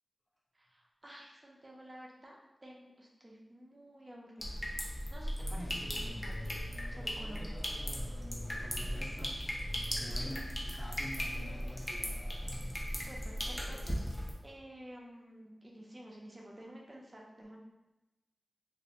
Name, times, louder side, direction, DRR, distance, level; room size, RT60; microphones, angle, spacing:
voice 1, 0.5-2.4 2.6-7.6 10.1-10.3 12.9-17.6, right 1 dB, 30° right, -2 dB, 0.5 m, -52 dB
sound 1, 4.4-14.3, equal, 25° left, 0.5 m, -37 dB
voice 2, 8.6-12.0, left 1 dB, 60° left, -6 dB, 0.8 m, -47 dB
2.4 x 2.1 x 2.7 m, 1.0 s
wide cardioid pair, 65°, 0 cm